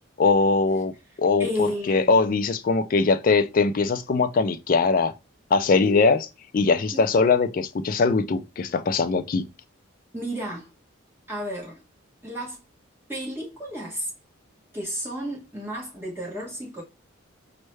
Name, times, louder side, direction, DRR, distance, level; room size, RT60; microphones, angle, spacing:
voice 1, 0.2-0.9 1.2-5.1 5.5-6.3 6.5-9.5, left 4 dB, 40° left, 0.3 m, -21 dB
voice 2, 1.4-2.3 5.7-6.0 6.9-7.1 10.1-10.7 11.3-11.8 12.2-12.6 13.1-14.1 14.7-16.8, equal, 10° right, 1.1 m, -32 dB
4.4 x 2.2 x 3.1 m
head